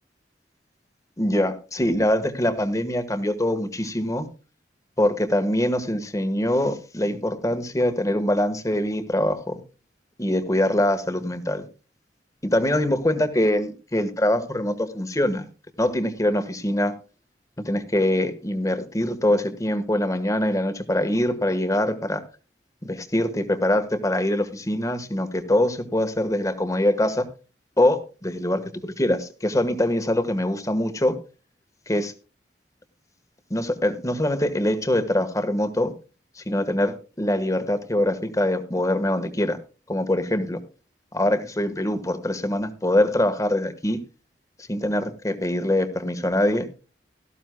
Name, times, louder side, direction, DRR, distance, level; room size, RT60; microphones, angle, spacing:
voice 1, 1.2-4.3 5.0-9.6 10.2-11.6 12.4-15.5 15.8-16.9 17.6-22.2 22.8-27.2 27.8-31.1 31.9-32.1 33.5-35.9 36.4-39.6 39.9-40.6 41.1-44.0 44.7-46.7, left 1 dB, 20° left, 8 dB, 1.3 m, -23 dB
17.5 x 14.0 x 2.2 m, 0.34 s
head